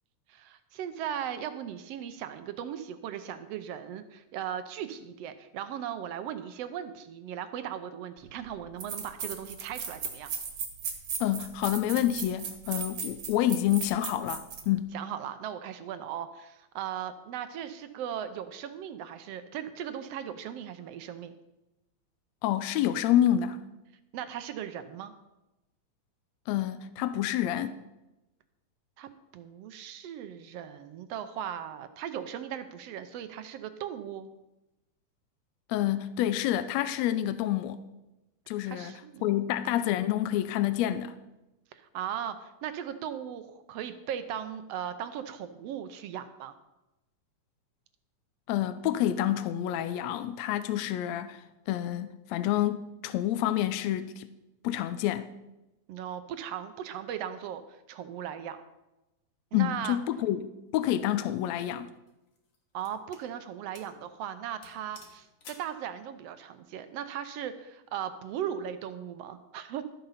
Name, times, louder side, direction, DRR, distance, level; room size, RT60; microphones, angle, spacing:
voice 1, 0.3-10.3 14.9-21.3 24.1-25.1 29.0-34.3 38.6-39.4 41.7-46.5 55.9-57.6 57.9-58.6 59.5-60.0 62.7-69.8, right 9 dB, 75° right, 1.5 m, -38 dB
sound 1, 8.2-8.3 8.8-14.7, right 6 dB, 55° right, 2.1 m, -36 dB
voice 2, 11.2-15.0 22.4-23.6 26.5-27.8 35.7-37.8 38.5-38.9 39.2-41.2 48.5-54.3 54.6-55.3 59.5-61.9, left 12 dB, 75° left, 1.7 m, -28 dB
sound 2, 61.1-61.3 62.1-63.3 63.7-64.0 64.3-64.4 64.6-65.7, left 4 dB, 55° left, 2.4 m, -52 dB
13.0 x 7.8 x 5.7 m
omnidirectional pair, 3.3 m